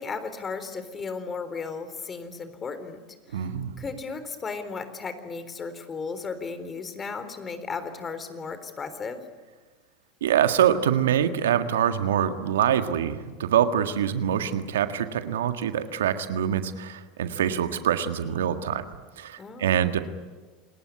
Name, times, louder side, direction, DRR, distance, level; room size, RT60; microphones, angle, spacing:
voice 1, 0.0-3.5 3.8-9.2 19.4-19.9, left 4 dB, 30° left, 10 dB, 3.9 m, -35 dB
voice 2, 3.3-3.7 10.2-18.8 19.2-20.0, right 9 dB, 85° right, 9 dB, 1.7 m, -25 dB
28.0 x 19.5 x 9.8 m, 1.4 s
hypercardioid pair, 90°, 0 cm